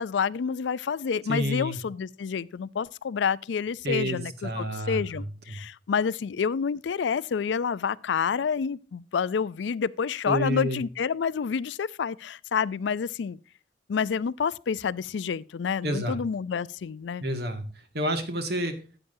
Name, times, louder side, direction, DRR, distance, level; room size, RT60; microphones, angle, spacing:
voice 1, 0.0-13.4 13.9-17.2, left 6 dB, 75° left, 0.4 m, -28 dB
voice 2, 1.3-1.8 3.8-5.6 10.3-10.8 15.8-16.2 17.2-17.6 17.9-18.7, equal, 60° right, 1.9 m, -29 dB
13.0 x 8.8 x 2.7 m
head